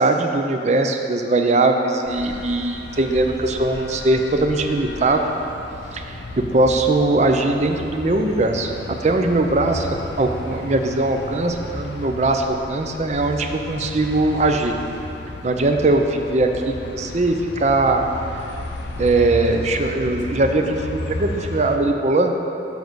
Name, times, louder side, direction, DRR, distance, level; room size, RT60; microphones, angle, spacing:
voice 1, 0.0-5.2 5.9-8.7 9.0-14.7 15.4-18.0 19.0-22.3, right 2 dB, 40° right, 5 dB, 0.5 m, -20 dB
sound 1, 2.0-21.8, left 2 dB, 75° left, 0.5 m, -34 dB
7.2 x 5.3 x 6.1 m, 2.8 s
head